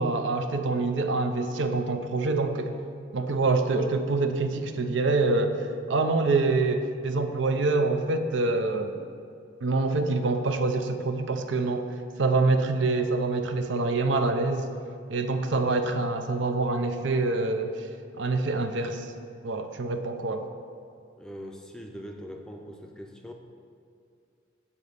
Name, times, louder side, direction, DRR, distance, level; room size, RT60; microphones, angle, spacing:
voice 1, 0.0-2.8 3.1-9.1 9.6-14.7 15.1-17.9 18.2-19.1 19.4-20.4, right 3 dB, 75° right, 7 dB, 0.6 m, -26 dB
voice 2, 21.2-23.3, equal, 5° left, 2 dB, 0.5 m, -42 dB
8.9 x 4.1 x 6.5 m, 2.4 s
head